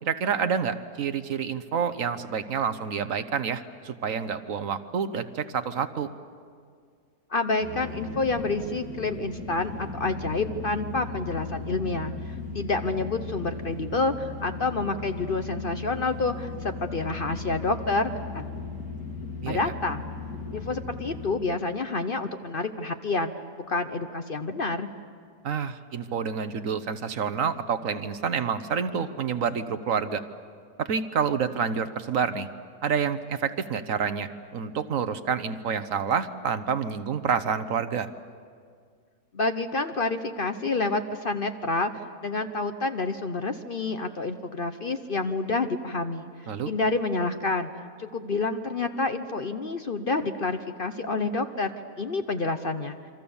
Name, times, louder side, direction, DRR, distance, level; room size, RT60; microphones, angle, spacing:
voice 1, 0.0-6.1 19.4-19.7 25.4-30.2 30.8-32.5 32.8-38.1 46.5-46.7, right 6 dB, 60° right, 11 dB, 1.3 m, -28 dB
voice 2, 7.3-18.5 19.5-20.0 20.5-23.3 23.7-24.9 39.3-41.9 42.2-46.3 46.7-47.7 48.0-51.7 52.0-53.0, left 3 dB, 45° left, 8 dB, 0.9 m, -28 dB
sound 1, 7.6-21.3, left 4 dB, 85° left, 4.2 m, -37 dB
28.0 x 24.5 x 7.1 m, 2.1 s
omnidirectional pair, 1.6 m